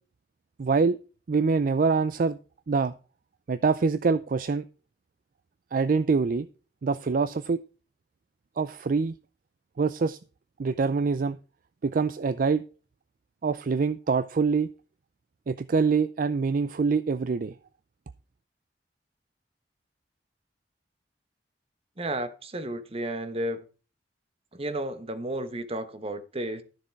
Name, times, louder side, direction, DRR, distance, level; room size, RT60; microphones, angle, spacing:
voice 1, 0.6-1.0 1.3-2.4 2.7-2.9 3.5-4.7 5.7-6.5 6.8-7.6 8.6-9.2 9.8-10.2 10.6-11.4 11.8-12.6 13.4-14.7 15.5-17.5, right 4 dB, 50° right, 0.4 m, -25 dB
voice 2, 22.0-23.6 24.5-26.6, right 1 dB, 35° right, 1.2 m, -32 dB
12.5 x 7.0 x 4.6 m
head